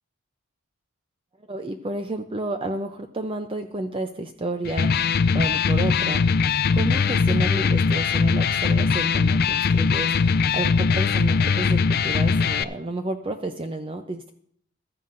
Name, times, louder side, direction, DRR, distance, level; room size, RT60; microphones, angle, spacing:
voice 1, 1.4-6.2 6.7-14.3, right 2 dB, 25° right, 6 dB, 0.5 m, -31 dB
Electric guitar, 4.6-12.6, left 5 dB, 45° left, 0.4 m, -21 dB
15.0 x 12.5 x 2.6 m, 0.66 s
head